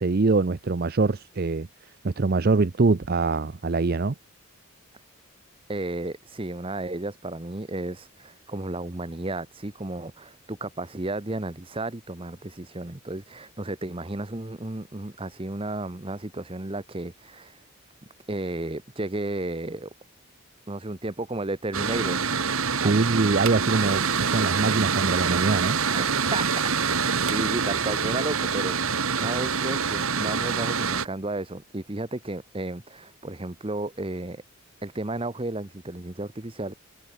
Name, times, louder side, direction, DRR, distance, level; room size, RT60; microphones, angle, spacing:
voice 1, 0.0-1.7 2.0-4.1 22.7-25.8, right 3 dB, 45° right, 0.5 m, -23 dB
voice 2, 5.7-17.6 18.3-19.9 20.7-22.2 22.8-22.9 25.9-34.4 34.8-36.7, right 2 dB, 25° right, 0.9 m, -33 dB
Mechanical fan, 21.7-31.1, right 5 dB, 70° right, 1.8 m, -25 dB
head